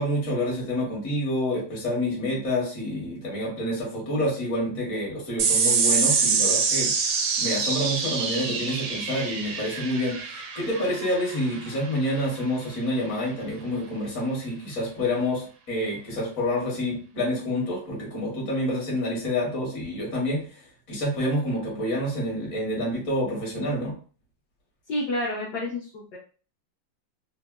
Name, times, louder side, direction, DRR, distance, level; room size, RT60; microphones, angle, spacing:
voice 1, 0.0-6.9 7.4-20.6 20.9-23.9, left 1 dB, 50° left, -2 dB, 1.3 m, -28 dB
sound 1, 5.4-12.2, right 5 dB, 90° right, 1.5 m, -25 dB
voice 2, 24.9-26.2, left 1 dB, 70° left, -3 dB, 1.0 m, -29 dB
3.4 x 2.0 x 2.2 m, 0.39 s
omnidirectional pair, 2.3 m